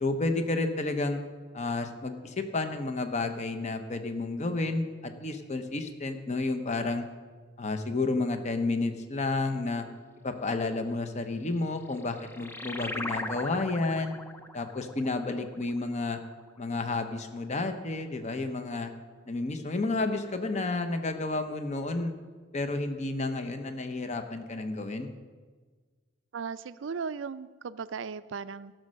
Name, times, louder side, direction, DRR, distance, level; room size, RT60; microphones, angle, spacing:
voice 1, 0.0-1.2 1.5-7.0 7.6-9.8 10.2-14.2 14.5-16.2 16.6-18.9 19.3-22.1 22.5-25.1, left 3 dB, 40° left, 7 dB, 0.8 m, -31 dB
sound 1, 11.6-16.6, left 2 dB, 10° left, 0.5 m, -40 dB
voice 2, 26.3-28.7, right 5 dB, 85° right, 14 dB, 0.4 m, -37 dB
15.0 x 6.4 x 6.4 m, 1.5 s
head